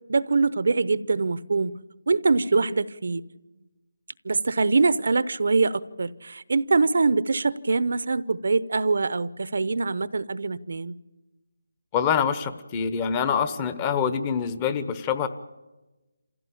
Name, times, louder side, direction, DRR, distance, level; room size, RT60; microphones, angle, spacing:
voice 1, 0.1-1.8 2.1-3.2 4.2-10.9, right 4 dB, 65° right, 17 dB, 0.8 m, -23 dB
voice 2, 11.9-15.3, left 7 dB, 20° left, 11 dB, 1.0 m, -25 dB
26.5 x 16.0 x 8.6 m, 1.1 s
figure-of-eight pair, 165°, 0 cm